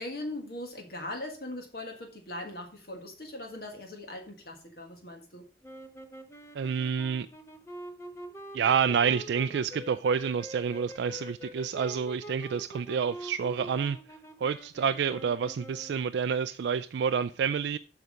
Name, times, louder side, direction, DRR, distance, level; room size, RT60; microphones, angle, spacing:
voice 1, 0.0-5.4, left 1 dB, 55° left, 1.7 m, -40 dB
sound 1, 5.6-16.1, right 1 dB, 15° left, 0.8 m, -45 dB
voice 2, 6.5-7.3 8.5-14.0 14.4-17.8, right 6 dB, 75° right, 0.3 m, -28 dB
8.0 x 5.9 x 5.1 m
head